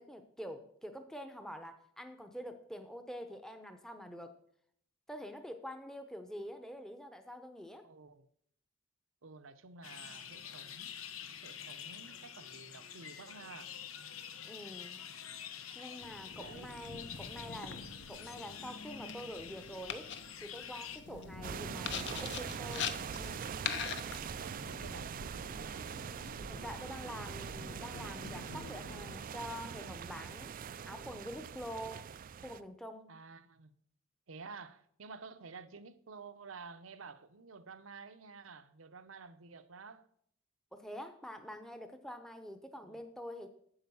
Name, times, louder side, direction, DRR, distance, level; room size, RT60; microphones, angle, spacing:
voice 1, 0.0-4.3 5.1-7.9 14.4-15.0 15.7-20.1 20.4-23.5 26.5-30.5 30.8-32.0 32.4-33.1 40.7-43.5, equal, 5° left, 0.7 m, -46 dB
voice 2, 7.8-8.3 9.2-13.8 16.4-17.0 21.1-21.4 24.1-25.9 33.1-33.7 34.3-40.1 42.8-43.0, right 4 dB, 75° right, 0.8 m, -52 dB
sound 1, 9.8-21.0, left 8 dB, 90° left, 0.9 m, -47 dB
sound 2, 16.0-29.2, left 6 dB, 60° left, 0.9 m, -45 dB
sound 3, 21.4-32.6, right 7 dB, 45° right, 0.4 m, -43 dB
8.9 x 7.3 x 7.0 m
head